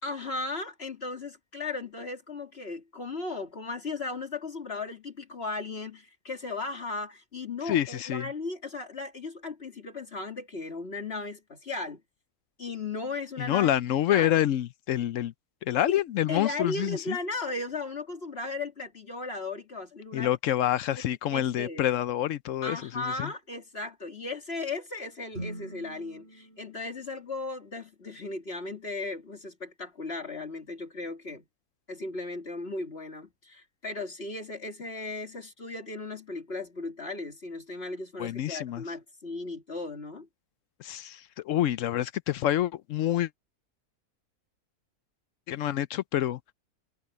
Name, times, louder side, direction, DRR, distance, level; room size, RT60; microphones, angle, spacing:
voice 1, 0.0-12.0 12.6-13.7 14.1-14.3 16.3-20.4 21.3-21.8 22.6-31.4 31.9-40.3, left 3 dB, 40° left, 2.6 m, -36 dB
voice 2, 7.6-8.3 13.4-15.3 15.6-17.2 20.1-23.3 38.2-38.8 40.8-43.3 45.5-46.4, left 12 dB, 65° left, 0.8 m, -27 dB
sound 1, 25.3-27.7, right 1 dB, 40° right, 7.5 m, -44 dB
omnidirectional pair, 1.6 m